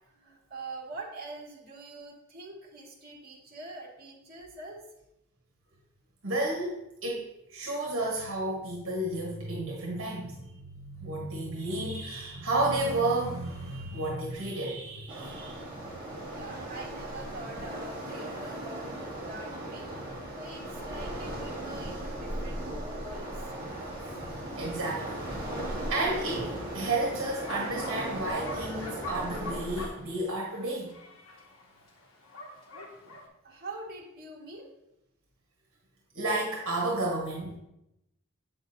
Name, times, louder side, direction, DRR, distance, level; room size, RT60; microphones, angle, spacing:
voice 1, 0.1-4.8 16.3-18.9 19.3-19.9 20.3-23.3 33.4-34.8, right 2 dB, 45° right, -3 dB, 1.7 m, -44 dB
voice 2, 6.2-15.6 24.6-25.2 25.9-30.9 36.1-37.6, right 2 dB, 65° right, -2 dB, 1.3 m, -32 dB
Waves surf, 15.1-29.9, right 1 dB, 20° right, 1.8 m, -37 dB
Bark, 26.1-33.3, left 2 dB, 70° left, 1.2 m, -45 dB
7.8 x 6.0 x 2.7 m, 0.86 s
head